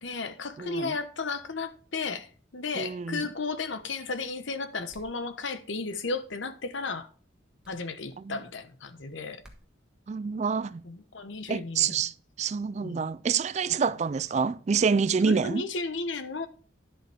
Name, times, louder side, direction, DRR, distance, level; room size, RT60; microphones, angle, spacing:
voice 1, 0.0-7.1 7.7-9.4 10.8-12.0 12.8-13.1 15.3-16.5, left 3 dB, 75° left, 1.1 m, -34 dB
voice 2, 0.6-0.9 2.8-3.3 8.2-8.4 10.1-10.8 11.5-15.6, right 5 dB, 35° right, 0.3 m, -27 dB
sound 1, 4.9-5.2 7.6-7.8 9.4-9.7, equal, 5° right, 1.4 m, -53 dB
11.0 x 7.5 x 3.5 m
head